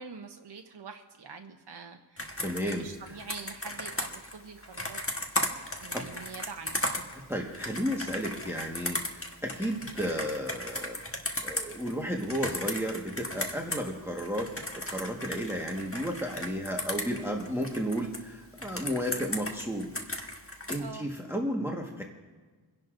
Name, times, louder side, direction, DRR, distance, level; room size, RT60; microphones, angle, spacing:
voice 1, 0.0-5.0 5.8-6.8 20.8-21.1, right 5 dB, 60° right, 4 dB, 0.8 m, -45 dB
Computer keyboard, 2.2-13.9 14.2-18.2 18.6-20.8, left 1 dB, 30° left, 1.4 m, -36 dB
voice 2, 2.4-3.2 5.9-6.0 7.3-11.0 11.4-19.9 20.7-22.0, equal, 5° right, 0 dB, 1.4 m, -33 dB
29.5 x 10.5 x 2.6 m, 1.4 s
wide cardioid pair, 50°, 47 cm